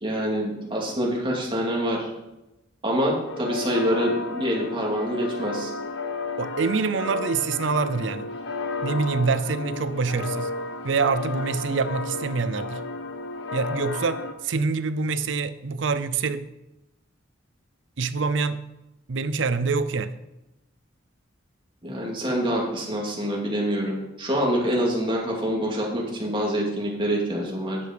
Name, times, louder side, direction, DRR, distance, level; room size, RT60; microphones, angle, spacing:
voice 1, 0.0-2.1 2.8-5.7 21.8-27.8, equal, 25° right, -3 dB, 2.4 m, -26 dB
sound 1, 3.3-14.3, left 3 dB, 65° left, 0.9 m, -33 dB
voice 2, 6.4-8.3 8.8-10.5 10.8-12.8 13.5-16.4 18.0-18.6 19.1-20.1, right 4 dB, 70° right, 13 dB, 0.6 m, -25 dB
9.7 x 6.6 x 5.1 m, 0.94 s
head